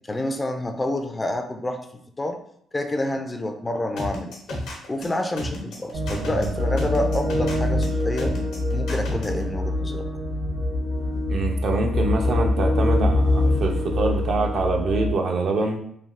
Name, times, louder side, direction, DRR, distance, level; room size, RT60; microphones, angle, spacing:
voice 1, 0.1-2.4 2.7-4.6 4.9-8.4 8.7-10.1, left 1 dB, 20° left, 6 dB, 0.3 m, -28 dB
sound 1, 4.0-9.4, left 1 dB, 85° left, 0.8 m, -32 dB
sound 2, 5.9-15.1, left 1 dB, 75° right, 1.1 m, -24 dB
voice 2, 11.3-15.8, right 3 dB, 60° right, 2 dB, 0.5 m, -25 dB
3.3 x 2.3 x 2.4 m, 0.68 s
cardioid pair, 90°, 0 cm